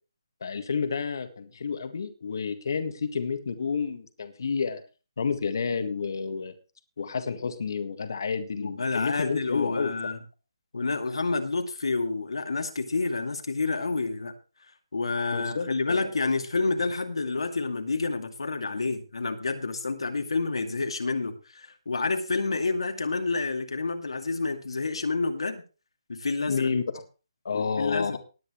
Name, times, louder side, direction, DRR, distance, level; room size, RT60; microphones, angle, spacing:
voice 1, 0.4-4.8 5.2-6.5 7.0-9.9 15.3-16.1 26.5-26.8 27.5-28.2, left 5 dB, 45° left, 8 dB, 1.8 m, -30 dB
voice 2, 8.6-10.2 10.7-14.3 14.9-25.6 26.1-26.7 27.5-28.2, left 3 dB, 85° left, 6 dB, 2.5 m, -29 dB
19.0 x 9.5 x 3.2 m, 0.33 s
hypercardioid pair, 175°, 3 cm